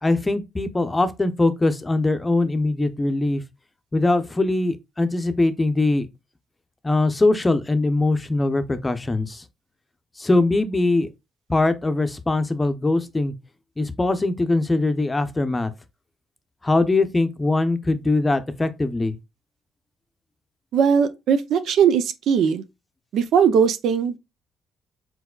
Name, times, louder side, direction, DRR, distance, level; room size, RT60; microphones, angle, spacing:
voice 1, 0.0-3.4 3.9-6.1 6.8-9.4 10.2-11.1 11.5-13.3 13.8-15.7 16.6-19.2, left 2 dB, 20° left, 0.6 m, -21 dB
voice 2, 20.7-22.6 23.1-24.2, right 7 dB, 75° right, 0.5 m, -19 dB
4.7 x 4.0 x 2.2 m
cardioid pair, 90°, 0 cm